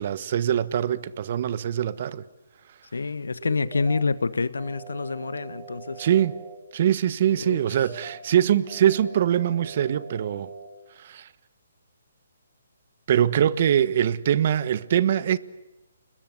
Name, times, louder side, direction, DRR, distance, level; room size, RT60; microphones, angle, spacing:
voice 1, 0.0-2.2 6.0-6.3 6.7-10.5 11.0-11.3 13.1-15.4, right 10 dB, 45° right, 1.3 m, -23 dB
voice 2, 2.9-6.1 7.3-7.6, left 4 dB, 90° left, 1.4 m, -27 dB
sound 1, 3.4-4.0 4.6-6.6 7.6-8.2 8.7-10.7, right 6 dB, 30° right, 5.1 m, -43 dB
30.0 x 21.5 x 8.3 m
hypercardioid pair, 155°, 0 cm